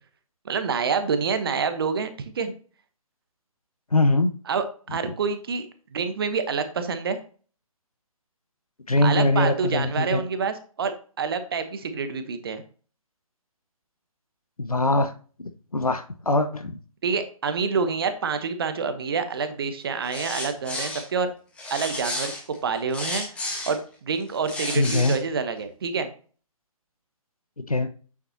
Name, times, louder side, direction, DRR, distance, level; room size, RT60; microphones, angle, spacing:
voice 1, 0.4-2.5 4.5-4.6 4.9-5.7 5.9-7.2 9.0-10.9 11.2-12.6 17.0-21.3 21.7-22.3 22.6-23.3 23.7-26.1, right 5 dB, 40° right, 9 dB, 1.0 m, -27 dB
voice 2, 3.9-4.3 4.9-5.0 8.9-10.3 14.6-15.1 15.4-16.8 24.8-25.2 27.6-27.9, left 2 dB, 85° left, 9 dB, 0.9 m, -22 dB
sound 1, 20.0-21.0 21.6-23.8 24.3-25.2, left 2 dB, 5° left, 1.5 m, -32 dB
8.8 x 7.1 x 2.8 m, 0.39 s
figure-of-eight pair, 135°, 18 cm